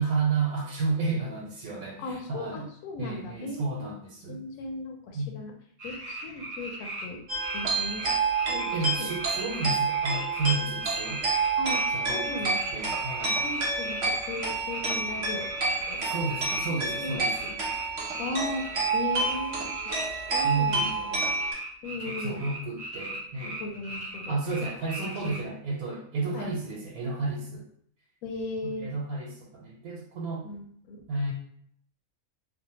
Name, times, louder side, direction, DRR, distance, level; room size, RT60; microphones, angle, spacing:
voice 1, 0.0-2.7 3.0-4.4 5.1-5.3 8.7-11.2 11.9-13.4 16.0-17.6 20.4-21.1 22.1-23.6 24.3-27.6 28.6-30.5 31.1-31.3, right 3 dB, 85° right, -3 dB, 1.1 m, -32 dB
voice 2, 2.0-3.9 4.3-5.5 5.8-7.2 7.5-8.1 8.5-9.1 11.6-12.6 13.4-15.5 15.8-16.0 16.7-17.2 18.2-18.7 18.9-20.0 20.3-20.8 21.1-21.2 21.8-22.4 23.4-24.3 25.2-25.4 26.3-26.4 28.2-28.9 30.4-31.0, left 2 dB, 80° left, 2 dB, 1.0 m, -37 dB
sound 1, 5.8-7.1 7.4-10.5 10.8-20.9 21.2-25.4, right 1 dB, 35° right, 0.7 m, -39 dB
sound 2, 7.3-21.5, right 3 dB, 55° right, 0.9 m, -29 dB
2.6 x 2.0 x 2.8 m, 0.64 s
omnidirectional pair, 1.5 m